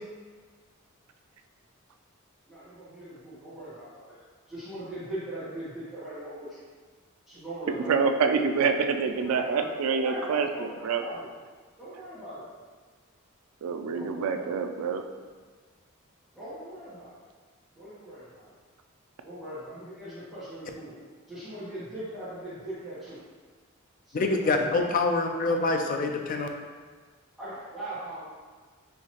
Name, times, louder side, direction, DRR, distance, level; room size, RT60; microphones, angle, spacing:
voice 1, 2.5-6.5 7.3-8.0 9.2-11.3 11.8-12.5 13.9-14.5 16.3-17.2 17.7-18.5 19.2-21.0 21.3-23.2 24.0-24.7 27.4-28.3, right 1 dB, ahead, -16 dB, 1.1 m, -40 dB
voice 2, 7.9-11.0 13.6-15.0, right 5 dB, 90° right, 6 dB, 0.3 m, -26 dB
voice 3, 24.1-26.5, left 3 dB, 40° left, 4 dB, 0.3 m, -26 dB
4.4 x 2.7 x 2.9 m, 1.5 s
head